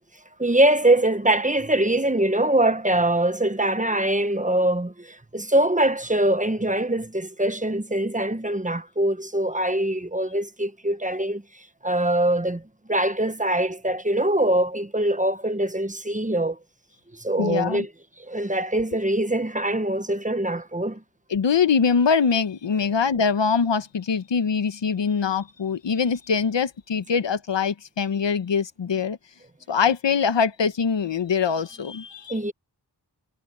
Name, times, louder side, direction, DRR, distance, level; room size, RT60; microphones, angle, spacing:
voice 1, 0.4-11.4 11.8-12.6 12.9-16.6 17.1-17.9 18.2-21.0 32.3-32.5, right 1 dB, 15° right, 1.3 m, -23 dB
voice 2, 17.4-17.8 21.3-29.2 29.7-32.3, left 6 dB, 80° left, 1.2 m, -23 dB
cardioid pair, 45°, 43 cm